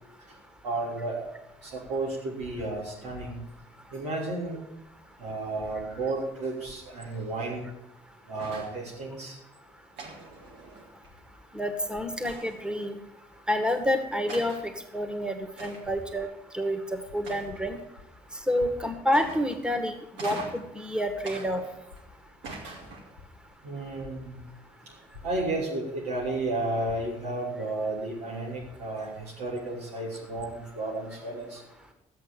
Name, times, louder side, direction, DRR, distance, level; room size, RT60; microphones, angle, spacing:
voice 1, 0.6-1.2 1.6-3.4 3.9-4.6 5.2-7.7 8.3-9.4 23.6-24.4 25.2-31.6, right 2 dB, 90° right, -5 dB, 3.3 m, -32 dB
sound 1, 8.4-8.8 10.0-11.1 12.2-12.7 13.7-13.8 14.3-14.7 15.6-16.0 17.2-17.8 19.1-19.7 20.2-20.7 21.2-22.0 22.4-23.2, right 3 dB, 70° right, 2.3 m, -42 dB
voice 2, 11.5-13.0 13.5-16.3 16.5-17.8 18.5-21.6, equal, 5° right, 7 dB, 2.0 m, -29 dB
12.0 x 8.1 x 6.9 m, 0.84 s
hypercardioid pair, 40°, 20 cm